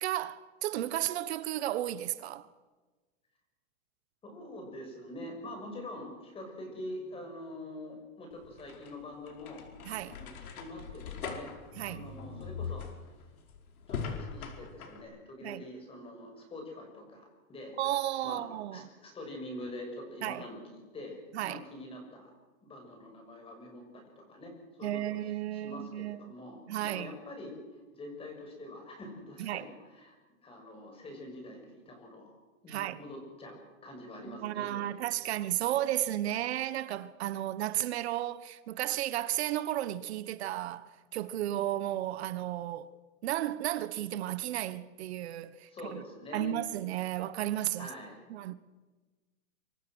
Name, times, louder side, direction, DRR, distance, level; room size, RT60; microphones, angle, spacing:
voice 1, 0.0-2.5 9.8-10.2 11.8-12.1 15.4-15.6 17.8-18.9 20.2-20.4 21.3-21.6 24.8-26.3 26.7-27.1 29.4-29.7 32.7-33.0 34.3-42.9 43.2-46.0 46.3-47.9 48.3-48.5, right 13 dB, 50° right, 1.2 m, -33 dB
voice 2, 4.2-9.6 10.0-11.5 11.8-12.9 13.9-17.8 18.2-18.5 18.7-22.3 22.6-24.5 24.8-25.2 25.5-30.1 30.4-32.4 32.6-34.8 35.2-35.3 45.7-46.6 47.8-48.2, left 1 dB, 15° left, 6.3 m, -45 dB
sound 1, 8.3-15.0, left 5 dB, 90° left, 5.1 m, -41 dB
26.5 x 24.5 x 6.3 m
supercardioid pair, 165°, 42 cm